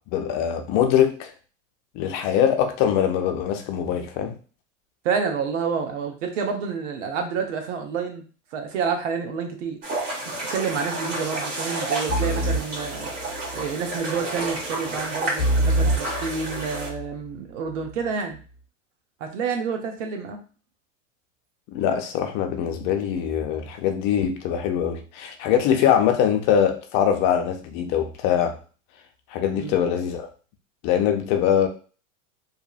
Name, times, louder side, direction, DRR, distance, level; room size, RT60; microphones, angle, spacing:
voice 1, 0.1-1.3 1.9-4.3 21.7-28.6 29.3-30.3 30.8-31.7, left 9 dB, 50° left, 0.6 m, -22 dB
voice 2, 5.0-8.2 8.5-9.8 10.5-13.1 13.5-18.4 19.2-20.4 25.8-25.9 29.5-29.8, right 6 dB, 75° right, 0.8 m, -28 dB
sound 1, 9.8-16.9, right 2 dB, 40° right, 1.4 m, -30 dB
sound 2, 12.1-13.7 15.4-17.1, right 1 dB, 20° left, 0.8 m, -25 dB
2.8 x 2.4 x 2.3 m
hypercardioid pair, 115°, 37 cm